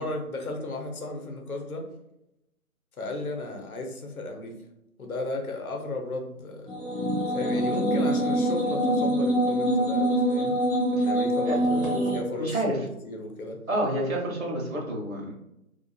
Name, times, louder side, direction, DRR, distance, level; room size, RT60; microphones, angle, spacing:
voice 1, 0.0-1.9 3.0-4.6 5.0-6.7 7.3-10.6 10.9-13.6, left 2 dB, 75° left, 2 dB, 0.8 m, -34 dB
sound 1, 6.7-12.2, right 1 dB, 20° right, 0.7 m, -25 dB
voice 2, 12.3-12.8 13.7-15.3, right 1 dB, 65° right, -2 dB, 0.9 m, -29 dB
2.6 x 2.4 x 2.3 m, 0.84 s
figure-of-eight pair, 165°, 43 cm